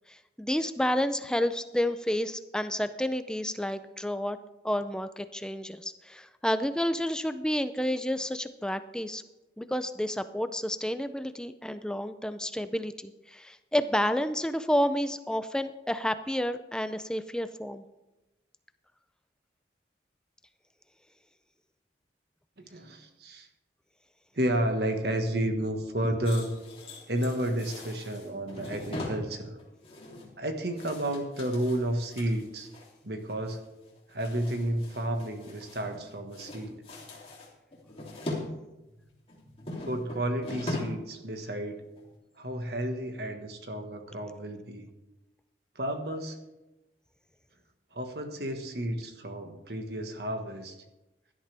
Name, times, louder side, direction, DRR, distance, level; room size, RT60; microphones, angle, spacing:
voice 1, 0.1-4.4 4.6-9.2 9.6-17.8, equal, 5° left, 11 dB, 0.5 m, -30 dB
voice 2, 22.6-23.5 24.3-26.6 27.1-29.6 30.4-32.7 33.0-33.6 34.1-36.8 39.8-41.8 42.4-44.9 45.7-46.4 47.9-50.8, right 1 dB, 60° right, 5 dB, 1.5 m, -31 dB
sound 1, 26.2-32.9 33.3-33.6 33.8-36.0 36.3-38.5 38.8-41.1 41.4-41.5 42.0-42.1, left 1 dB, 30° left, 2.9 m, -41 dB
16.5 x 11.5 x 3.4 m, 1.0 s
head